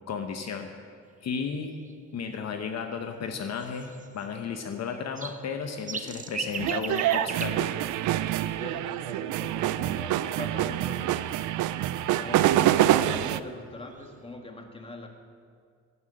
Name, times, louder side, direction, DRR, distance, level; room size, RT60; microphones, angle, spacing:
voice 1, 0.1-0.7 1.2-1.8 2.1-7.8, left 6 dB, 60° left, 5 dB, 1.0 m, -34 dB
sound 1, 1.4-1.5 1.7-2.0 3.4-4.5 4.8-8.7 11.0-12.7 13.4-13.5 13.8-14.2, right 5 dB, 25° right, 0.6 m, -40 dB
sound 2, 6.6-13.4, right 13 dB, 80° right, 0.5 m, -26 dB
voice 2, 8.4-11.7 12.1-15.1, left 1 dB, 20° left, 4 dB, 1.5 m, -42 dB
9.6 x 8.0 x 7.8 m, 2.2 s
cardioid pair, 90°, 30 cm